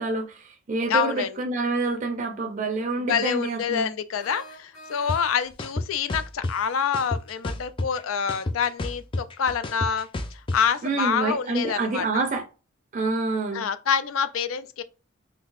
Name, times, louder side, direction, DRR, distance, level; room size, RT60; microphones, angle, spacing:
voice 1, 0.0-3.9 10.8-12.4 12.9-13.6, right 3 dB, 40° right, 0.5 m, -27 dB
voice 2, 0.9-1.4 3.0-10.1 10.5-12.2 13.5-14.8, left 7 dB, 85° left, 0.4 m, -26 dB
sound 1, 4.2-5.6, right 1 dB, 65° left, 1.5 m, -46 dB
sound 2, 5.1-5.2 5.6-6.5 6.9-8.0 8.3-10.6, left 2 dB, 25° left, 0.4 m, -30 dB
3.8 x 2.7 x 2.4 m
head